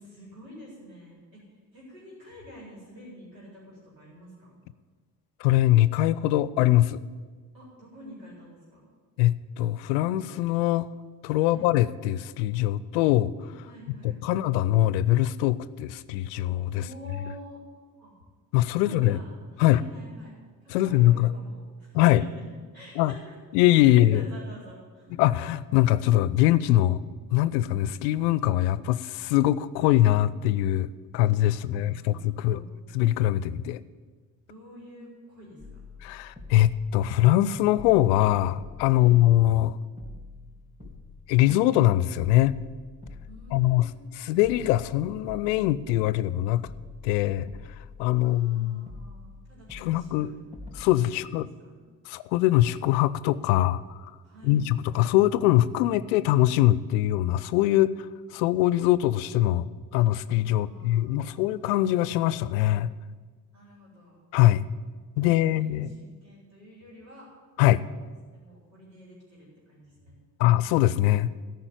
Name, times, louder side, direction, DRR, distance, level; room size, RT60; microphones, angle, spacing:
voice 1, 0.0-4.5 7.5-8.9 11.4-11.7 13.6-14.5 16.7-17.6 18.0-18.1 18.8-20.4 20.6-23.4 23.8-25.2 31.6-32.7 34.5-35.8 38.8-39.2 43.3-44.0 48.2-50.4 51.1-51.3 51.6-51.8 54.2-54.6 60.5-61.6 63.5-64.2 65.4-67.3 68.3-70.2, equal, 85° right, -5 dB, 4.2 m, -48 dB
voice 2, 5.4-7.0 9.2-10.9 11.2-13.5 14.0-16.8 18.5-19.2 19.6-19.8 20.7-21.3 21.9-22.2 23.0-23.1 23.5-24.2 25.2-27.0 27.3-30.9 31.1-32.6 32.9-33.8 36.0-39.8 41.3-42.5 43.5-43.9 44.2-46.7 47.0-47.5 48.0-48.9 49.7-50.3 50.7-51.5 52.1-54.1 54.4-59.7 59.9-62.9 64.3-64.7 65.2-65.9 67.6-67.8 70.4-71.3, left 14 dB, 75° left, 17 dB, 0.6 m, -22 dB
sound 1, 35.6-37.4 37.7-39.7 40.0-41.8 42.2-44.1 44.4-46.3 46.6-48.5 48.9-50.8, left 3 dB, 10° right, 3.3 m, -46 dB
13.5 x 5.3 x 9.1 m, 1.5 s
hypercardioid pair, 45°, 50 cm